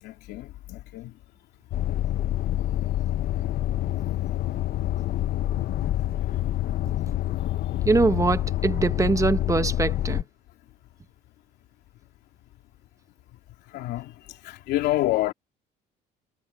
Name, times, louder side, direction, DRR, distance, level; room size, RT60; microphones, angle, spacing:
voice 1, 0.0-1.1 6.2-6.6 13.7-15.3, left 16 dB, 85° left, 3.0 m, -29 dB
sound 1, 1.7-10.2, left 13 dB, 60° left, 0.8 m, -27 dB
voice 2, 7.9-10.2, right 3 dB, 20° right, 1.0 m, -23 dB
cardioid pair, 110°, 17 cm